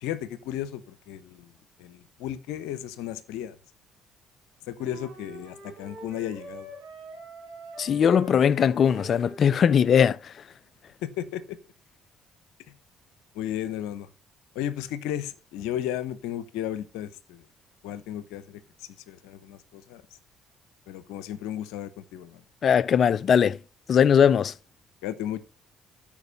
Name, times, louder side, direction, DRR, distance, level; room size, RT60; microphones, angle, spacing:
voice 1, 0.0-1.5 1.8-3.6 4.7-6.7 11.0-11.6 13.3-14.1 14.5-17.4 17.8-18.6 19.1-20.0 20.9-22.4 25.0-25.4, left 11 dB, 80° left, 0.8 m, -34 dB
Wind instrument woodwind instrument, 4.8-10.1, right 3 dB, 90° right, 5.0 m, -45 dB
voice 2, 7.8-10.2 22.6-23.6 23.9-24.5, left 8 dB, 55° left, 0.5 m, -20 dB
12.0 x 5.2 x 5.4 m
hypercardioid pair, 60°, 0 cm